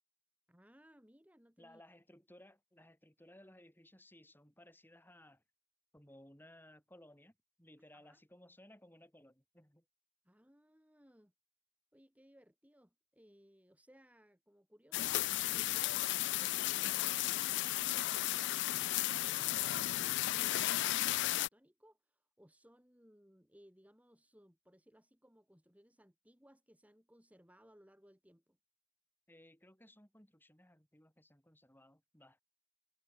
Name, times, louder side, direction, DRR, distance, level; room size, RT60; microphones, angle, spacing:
voice 1, 0.5-1.8 7.9-8.2 10.2-11.3 11.9-28.6, equal, 5° right, 5.0 m, -64 dB
voice 2, 1.6-5.4 5.9-9.8 29.3-32.4, left 1 dB, 10° left, 6.5 m, -61 dB
sound 1, 14.9-21.5, left 16 dB, 60° left, 0.3 m, -34 dB
head